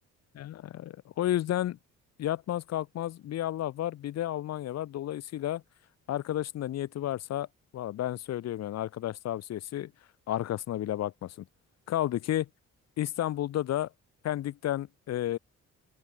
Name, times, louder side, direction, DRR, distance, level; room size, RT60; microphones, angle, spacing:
voice 1, 0.4-1.8 2.2-5.6 6.1-7.5 7.7-9.9 10.3-11.3 11.9-12.5 13.0-13.9 14.2-15.4, left 12 dB, 60° left, 0.8 m, -32 dB
open air
cardioid pair, 90°, 30 cm